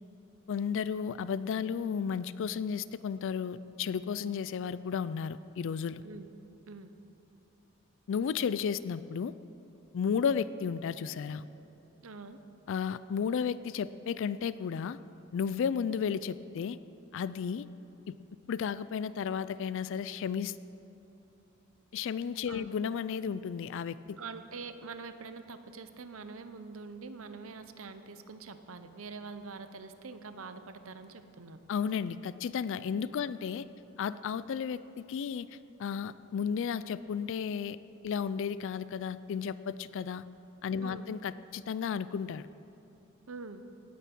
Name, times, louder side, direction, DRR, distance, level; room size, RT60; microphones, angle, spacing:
voice 1, 0.5-6.0 8.1-9.3 9.9-11.4 12.7-15.0 15.3-16.8 17.1-17.7 18.1-18.2 18.5-20.6 21.9-24.2 31.7-33.6 34.0-35.5 35.8-37.8 38.0-40.2 40.6-42.5, left 7 dB, 65° left, 16 dB, 0.3 m, -33 dB
voice 2, 12.0-12.4 22.5-22.7 24.2-31.6 33.2-33.3 40.8-41.1 43.3-43.6, right 4 dB, 70° right, 10 dB, 0.8 m, -45 dB
17.5 x 9.2 x 6.0 m, 2.8 s
head